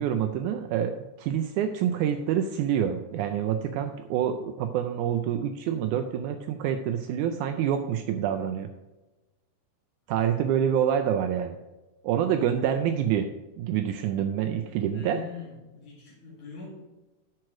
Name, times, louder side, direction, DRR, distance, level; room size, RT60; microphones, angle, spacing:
voice 1, 0.0-8.7 10.1-11.6 12.0-13.3 13.6-15.2, right 9 dB, 85° right, 7 dB, 1.7 m, -27 dB
voice 2, 14.8-16.7, left 5 dB, 60° left, -6 dB, 3.6 m, -42 dB
11.0 x 4.7 x 5.9 m, 1.1 s
omnidirectional pair, 4.0 m